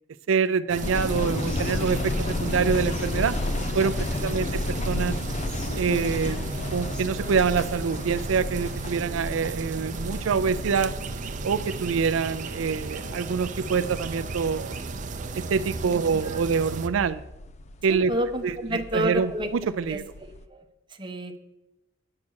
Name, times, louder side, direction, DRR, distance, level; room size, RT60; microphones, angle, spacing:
voice 1, 0.3-3.4 3.7-5.2 5.8-10.9 11.4-14.8 15.4-17.2 17.8-18.1 18.4-20.0, right 6 dB, 85° right, 13 dB, 0.4 m, -26 dB
sound 1, 0.7-16.9, right 4 dB, 40° right, 0.6 m, -35 dB
sound 2, 0.8-20.4, left 2 dB, 35° left, 0.5 m, -33 dB
Whispering, 1.4-2.7 2.9-3.1 3.3-4.9 5.4-8.6, right 1 dB, 5° left, 3.2 m, -46 dB
voice 2, 17.9-19.5 19.9-20.0 20.5-20.6 21.0-21.4, equal, 25° right, 5 dB, 1.0 m, -29 dB
9.8 x 7.2 x 6.3 m, 0.95 s
head